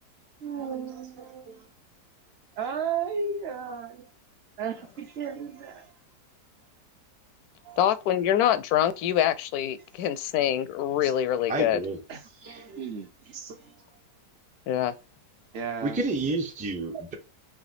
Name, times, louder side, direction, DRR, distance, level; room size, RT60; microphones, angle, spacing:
voice 1, 0.4-1.6 2.6-4.0 4.6-5.9 7.6-7.8 11.0-11.1 12.1-13.7 15.5-16.0, right 6 dB, 45° right, 0.9 m, -34 dB
voice 2, 7.8-11.8 14.7-14.9, left 11 dB, 70° left, 1.0 m, -25 dB
voice 3, 11.5-12.0 15.8-17.1, right 2 dB, 10° right, 0.4 m, -29 dB
4.9 x 3.4 x 2.5 m
omnidirectional pair, 1.8 m